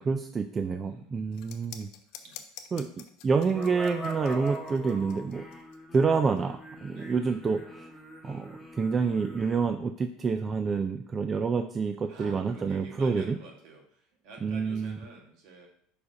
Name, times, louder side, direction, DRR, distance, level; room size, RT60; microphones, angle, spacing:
voice 1, 0.0-1.9 2.7-2.9 3.2-5.5 5.9-7.6 8.2-13.4 14.4-15.0, right 5 dB, 20° right, 7 dB, 0.3 m, -28 dB
voice 2, 0.8-1.2 2.2-2.4 6.9-7.1 12.1-15.7, right 3 dB, 55° right, 0 dB, 1.9 m, -49 dB
sound 1, 1.3-6.4, left 9 dB, 65° left, 0.7 m, -48 dB
sound 2, 3.5-9.6, equal, 5° left, 1.4 m, -42 dB
5.0 x 4.8 x 5.3 m, 0.63 s
supercardioid pair, 140°, 0 cm